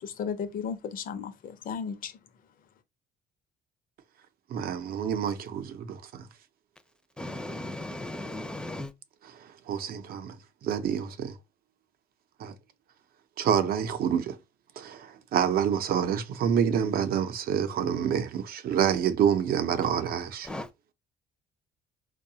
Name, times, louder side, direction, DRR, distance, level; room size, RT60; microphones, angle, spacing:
voice 1, 0.0-2.1, left 6 dB, 55° left, 0.7 m, -34 dB
voice 2, 4.5-6.3 9.2-10.4 10.6-11.4 12.4-12.5 13.4-14.4 14.8-20.5, right 8 dB, 60° right, 0.6 m, -27 dB
voice 3, 7.2-8.9 20.5-20.7, left 1 dB, 5° left, 0.5 m, -36 dB
4.5 x 2.3 x 2.8 m
cardioid pair, 110°, 17 cm